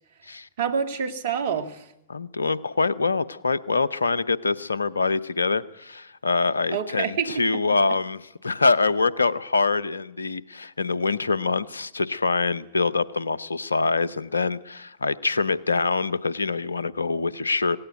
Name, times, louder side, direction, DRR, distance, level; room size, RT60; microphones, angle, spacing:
voice 1, 0.6-1.8 6.7-7.4, right 6 dB, 65° right, 10 dB, 1.9 m, -27 dB
voice 2, 2.1-17.8, left 4 dB, 90° left, 19 dB, 0.7 m, -25 dB
17.5 x 16.5 x 9.1 m, 0.85 s
hypercardioid pair, 100°, 0 cm